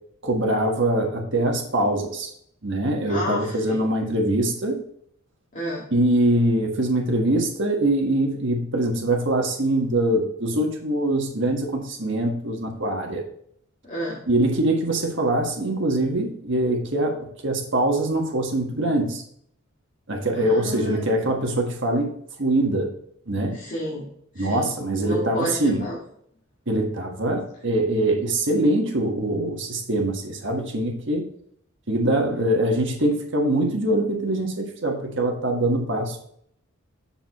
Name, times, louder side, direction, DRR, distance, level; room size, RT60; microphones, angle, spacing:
voice 1, 0.2-2.3 2.6-4.8 5.9-13.2 14.3-19.2 20.1-22.1 22.4-22.9 23.3-23.6 24.3-25.8 26.7-31.2 31.9-36.2, right 1 dB, 55° right, 2 dB, 1.5 m, -23 dB
voice 2, 3.1-3.8 5.5-5.9 13.9-14.2 20.3-21.1 23.5-24.1 24.3-24.7 25.0-26.0, left 1 dB, 35° left, -7 dB, 2.0 m, -31 dB
7.0 x 7.0 x 3.0 m, 0.68 s
head